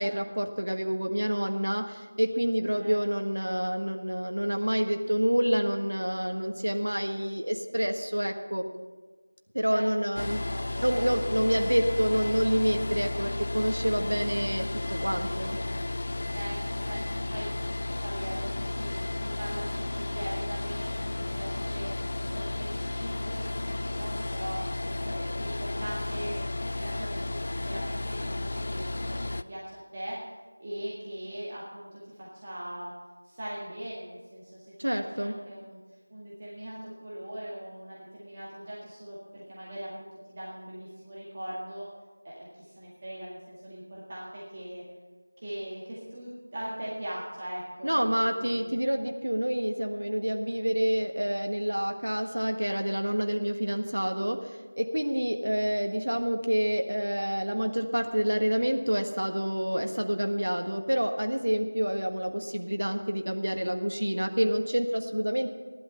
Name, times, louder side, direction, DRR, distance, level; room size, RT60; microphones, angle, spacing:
voice 1, 0.0-8.6 9.5-10.4 10.8-15.6 34.8-35.3 47.8-65.5, equal, 90° right, 4 dB, 1.4 m, -28 dB
voice 2, 10.1-11.2 16.3-17.5 18.0-21.9 22.3-24.6 25.0-26.5 26.8-30.2 30.6-32.9 33.2-34.7 34.9-35.8 36.1-41.9 42.2-44.8 45.4-48.8, right 1 dB, 25° right, -7 dB, 1.9 m, -40 dB
sound 1, 10.2-29.4, left 2 dB, 40° left, 0.4 m, -33 dB
15.0 x 12.0 x 5.6 m, 1.4 s
figure-of-eight pair, 175°, 0 cm